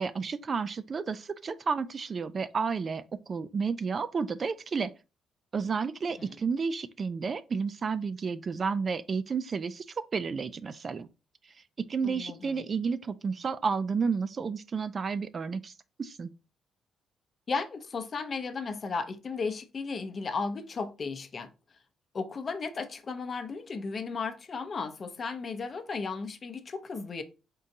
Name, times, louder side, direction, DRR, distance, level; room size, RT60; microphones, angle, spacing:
voice 1, 0.0-4.9 5.5-11.1 11.8-15.7 16.0-16.3, right 5 dB, 40° right, 0.3 m, -31 dB
voice 2, 12.0-12.6 17.5-21.5 22.1-27.2, left 4 dB, 40° left, 0.6 m, -35 dB
4.1 x 3.7 x 2.6 m
cardioid pair, 95°, 0 cm